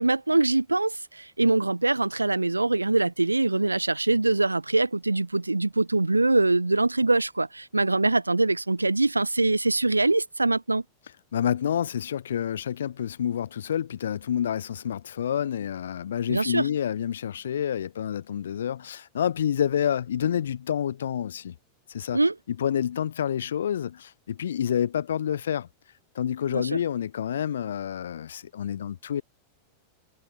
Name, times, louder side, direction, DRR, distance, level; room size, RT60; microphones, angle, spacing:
voice 1, 0.0-10.8 16.3-16.7 22.1-22.3 26.5-26.8, right 2 dB, 85° right, 1.2 m, -23 dB
voice 2, 11.3-21.5 21.9-22.2 22.5-25.7 26.1-29.2, left 9 dB, 65° left, 0.6 m, -28 dB
figure-of-eight pair, 90°, 0 cm